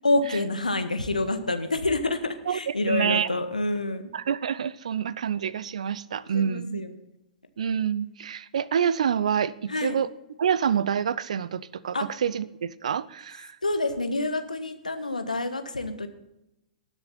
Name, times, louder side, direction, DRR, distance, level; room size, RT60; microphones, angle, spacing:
voice 1, 0.0-4.0 6.3-6.9 9.7-10.0 11.9-12.1 13.6-16.1, left 2 dB, 80° left, 8 dB, 1.3 m, -27 dB
voice 2, 2.5-3.3 4.1-6.8 7.6-10.1 10.4-13.6, right 8 dB, 60° right, 20 dB, 0.5 m, -27 dB
19.0 x 7.2 x 4.2 m, 0.90 s
figure-of-eight pair, 105°, 4 cm